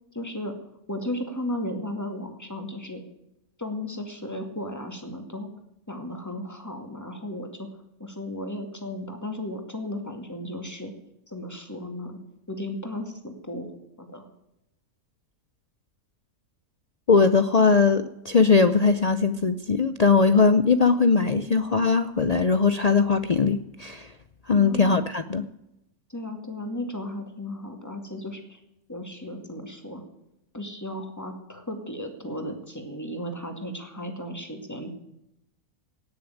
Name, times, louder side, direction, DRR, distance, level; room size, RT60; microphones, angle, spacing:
voice 1, 0.1-0.5 0.9-3.0 3.6-5.5 5.9-7.7 8.0-10.9 11.3-12.2 12.5-13.7 14.0-14.3 24.6-25.1 26.1-28.6 28.9-30.0 30.5-35.0, left 1 dB, 10° left, 5 dB, 2.2 m, -35 dB
voice 2, 17.1-24.1 24.5-25.4, left 4 dB, 75° left, 11 dB, 0.3 m, -20 dB
18.0 x 6.9 x 9.2 m, 0.85 s
omnidirectional pair, 1.6 m